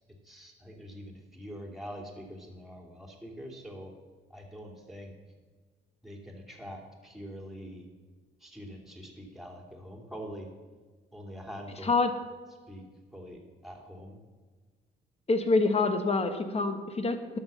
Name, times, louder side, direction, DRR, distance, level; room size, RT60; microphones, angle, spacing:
voice 1, 0.2-3.9 4.3-5.1 6.0-7.8 8.4-10.5 11.1-12.0 12.7-12.9 13.1-14.2, equal, ahead, 1 dB, 2.6 m, -44 dB
voice 2, 15.3-17.4, left 3 dB, 30° left, 7 dB, 1.4 m, -26 dB
11.5 x 6.5 x 6.8 m, 1.4 s
cardioid pair, 90°, 20 cm